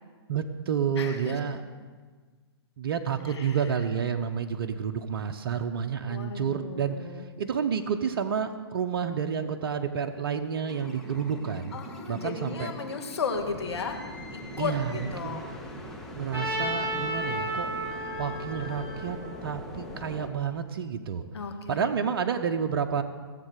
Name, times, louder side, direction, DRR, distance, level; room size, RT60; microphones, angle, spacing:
voice 1, 0.3-1.6 2.8-7.0 7.4-11.8 12.1-12.7 14.6-15.4 16.2-17.7 18.2-21.2 21.7-23.0, right 7 dB, 60° right, 6 dB, 0.9 m, -30 dB
voice 2, 1.0-1.4 3.3-3.7 6.0-7.3 11.7-14.0 14.3-15.5 21.3-21.9, left 5 dB, 75° left, 3 dB, 2.2 m, -35 dB
sound 1, 10.7-20.3, equal, 5° left, 1.8 m, -42 dB
Trumpet, 16.3-20.4, equal, 15° right, 3.8 m, -33 dB
17.0 x 7.6 x 6.5 m, 1.5 s
hypercardioid pair, 130°, 14 cm